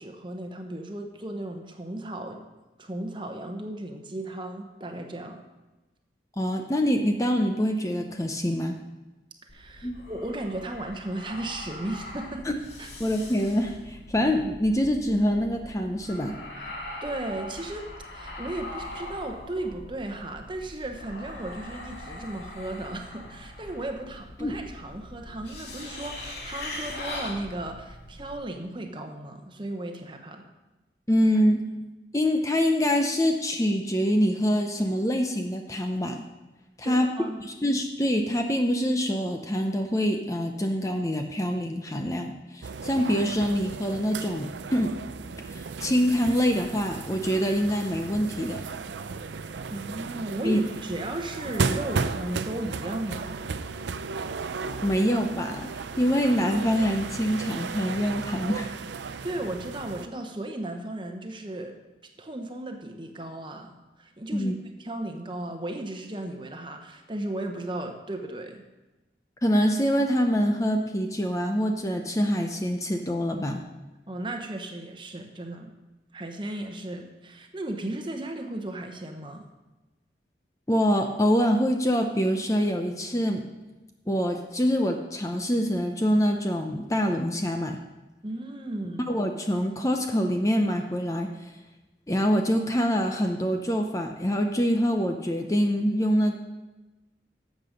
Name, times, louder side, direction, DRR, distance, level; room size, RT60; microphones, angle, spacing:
voice 1, 0.0-2.4 2.8-5.4 9.5-12.9 17.0-30.4 36.8-37.4 49.7-53.5 59.2-61.8 62.2-64.5 64.8-68.6 74.1-75.7 76.1-79.5 88.2-89.0, right 1 dB, 25° right, 4 dB, 1.0 m, -35 dB
voice 2, 6.4-8.7 9.8-10.0 13.0-16.4 24.4-24.5 31.1-31.6 32.1-36.2 36.8-37.1 37.4-44.9 45.5-48.6 50.4-50.6 54.8-58.7 64.3-64.5 69.4-73.6 80.7-83.4 84.1-87.8 89.1-91.3 92.1-96.4, equal, 20° left, 4 dB, 0.7 m, -25 dB
sound 1, 9.5-28.3, left 1 dB, 80° left, 2.0 m, -41 dB
sound 2, 42.6-60.1, right 4 dB, 90° right, 0.5 m, -35 dB
12.0 x 7.7 x 5.2 m, 1.1 s
head